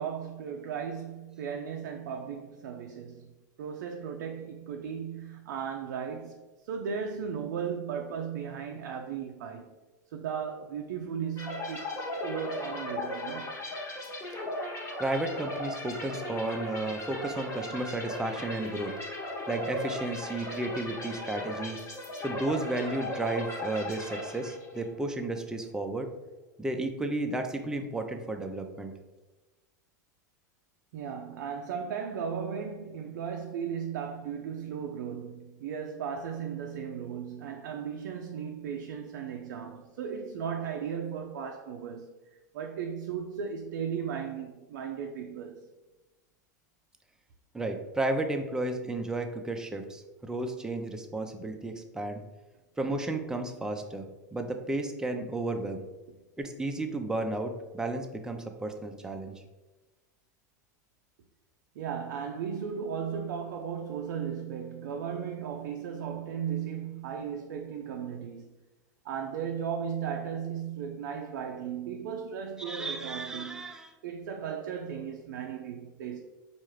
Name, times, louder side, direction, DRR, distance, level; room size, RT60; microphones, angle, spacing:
voice 1, 0.0-3.3 3.6-9.7 10.1-13.6 30.9-42.1 42.5-45.7 61.8-68.5 69.0-73.8 74.0-76.2, right 7 dB, 70° right, 0.4 m, -36 dB
sound 1, 11.4-24.9, left 1 dB, 30° left, 1.0 m, -37 dB
voice 2, 15.0-18.9 19.5-21.8 22.2-26.1 26.6-28.9 47.5-52.2 52.8-55.8 56.4-59.3 72.6-73.9, right 2 dB, 5° right, 0.4 m, -33 dB
4.5 x 2.4 x 3.1 m
hypercardioid pair, 100°, 10 cm